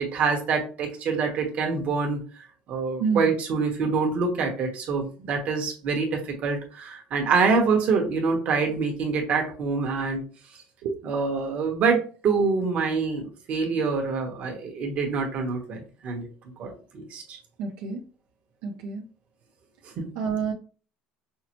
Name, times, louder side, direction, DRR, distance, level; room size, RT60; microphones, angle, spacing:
voice 1, 0.0-2.2 2.7-10.2 11.0-16.3 16.6-17.4 20.0-20.1, right 4 dB, 45° right, 1 dB, 1.1 m, -26 dB
voice 2, 17.6-18.0 18.6-19.1 20.2-20.5, right 5 dB, 75° right, 0 dB, 0.6 m, -28 dB
5.6 x 2.0 x 2.9 m, 0.38 s
cardioid pair, 140°, 3 cm